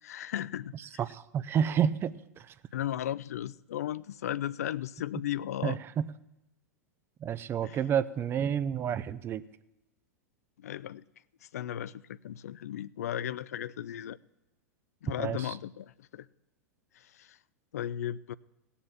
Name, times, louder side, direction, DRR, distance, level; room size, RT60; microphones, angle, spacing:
voice 1, 0.0-1.0 2.7-5.8 7.6-7.8 10.6-11.0 11.5-14.2 15.0-16.3 17.0-17.4 17.7-18.3, left 11 dB, 70° left, 0.4 m, -36 dB
voice 2, 1.0-2.1 5.6-6.1 7.2-9.4 15.2-15.4, right 8 dB, 25° right, 0.6 m, -29 dB
17.0 x 7.1 x 7.5 m
figure-of-eight pair, 95°, 9 cm